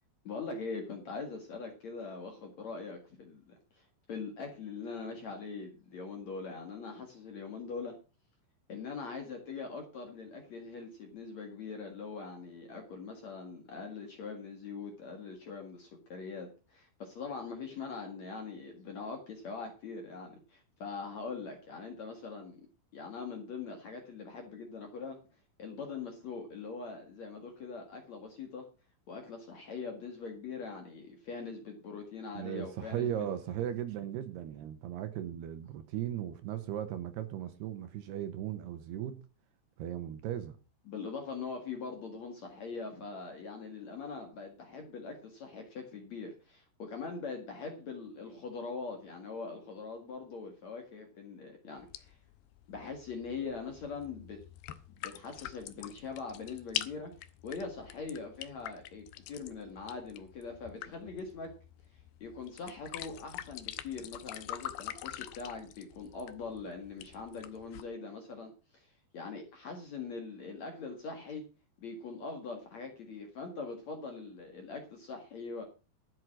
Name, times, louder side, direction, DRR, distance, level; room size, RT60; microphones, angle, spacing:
voice 1, 0.2-7.9 8.7-22.6 22.9-25.2 25.6-28.7 29.1-33.1 40.9-52.2 52.7-54.4 55.0-57.1 57.4-61.5 62.2-71.4 71.8-75.6, left 4 dB, 50° left, 2.3 m, -42 dB
voice 2, 32.4-39.2 39.8-40.6, right 10 dB, 75° right, 2.8 m, -37 dB
sound 1, 51.8-67.8, left 13 dB, 75° left, 2.4 m, -45 dB
13.0 x 7.9 x 6.0 m
omnidirectional pair, 5.3 m